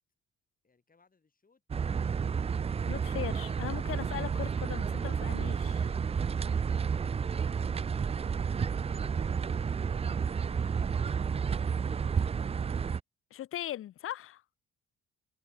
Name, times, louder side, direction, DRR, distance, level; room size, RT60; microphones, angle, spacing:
voice 1, 0.6-1.6, left 4 dB, 30° left, 7.5 m, -68 dB
sound 1, 1.7-13.0, right 6 dB, 20° right, 0.3 m, -31 dB
voice 2, 2.9-5.9 13.3-14.4, left 12 dB, 45° left, 0.4 m, -39 dB
cardioid pair, 90°, 30 cm